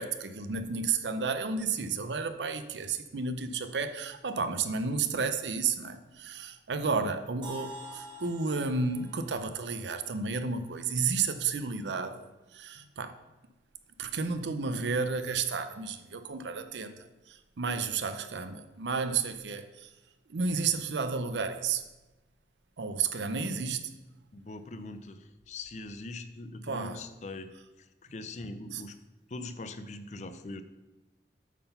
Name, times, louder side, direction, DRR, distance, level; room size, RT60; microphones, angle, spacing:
voice 1, 0.0-12.3 12.5-13.2 14.0-19.9 20.3-21.8 22.8-23.8 26.7-27.0 28.7-28.8, right 5 dB, 85° right, 0.6 m, -32 dB
sound 1, 7.4-11.3, right 2 dB, 25° right, 1.3 m, -48 dB
voice 2, 24.3-27.5 27.8-29.0 29.3-30.6, left 2 dB, 40° left, 0.4 m, -42 dB
8.3 x 3.9 x 5.5 m
head